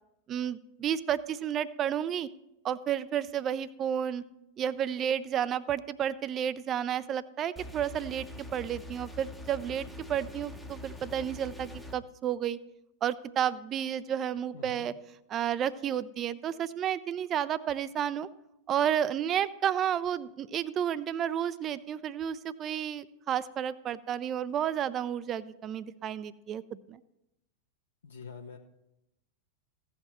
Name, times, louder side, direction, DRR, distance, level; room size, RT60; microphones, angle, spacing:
voice 1, 0.3-2.3 2.6-4.2 4.6-12.6 13.0-14.9 15.3-18.3 18.7-27.0, right 9 dB, 30° right, 16 dB, 0.4 m, -31 dB
sound 1, 7.6-12.0, left 1 dB, 5° left, 0.8 m, -44 dB
voice 2, 14.5-14.9 28.0-28.6, left 5 dB, 70° left, 1 dB, 0.8 m, -45 dB
16.0 x 5.8 x 4.3 m, 0.86 s
figure-of-eight pair, 90°, 0 cm